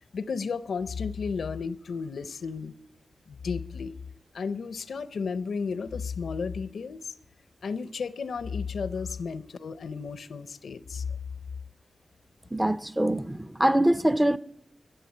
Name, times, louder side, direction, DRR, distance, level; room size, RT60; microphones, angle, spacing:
voice 1, 0.1-2.7 3.3-4.0 4.3-7.1 7.6-11.0, left 5 dB, 85° left, 0.6 m, -33 dB
voice 2, 12.5-14.4, right 1 dB, 10° right, 0.5 m, -24 dB
13.5 x 7.7 x 9.3 m
cardioid pair, 65°, 0 cm